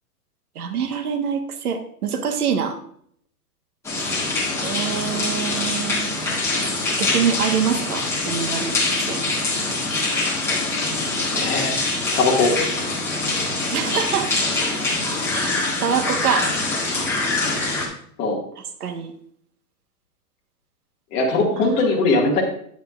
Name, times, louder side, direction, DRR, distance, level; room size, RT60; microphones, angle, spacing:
voice 1, 0.5-2.8 4.6-6.4 7.0-9.2 13.7-14.3 15.3-16.5 18.6-19.1 21.6-21.7, right 7 dB, 75° right, 7 dB, 1.5 m, -25 dB
sound 1, 3.8-17.9, left 2 dB, 5° left, 1.7 m, -24 dB
voice 2, 11.3-12.6 18.2-18.4 21.1-22.4, left 3 dB, 25° left, -2 dB, 2.1 m, -20 dB
10.0 x 9.4 x 2.5 m, 0.63 s
hypercardioid pair, 155°, 45 cm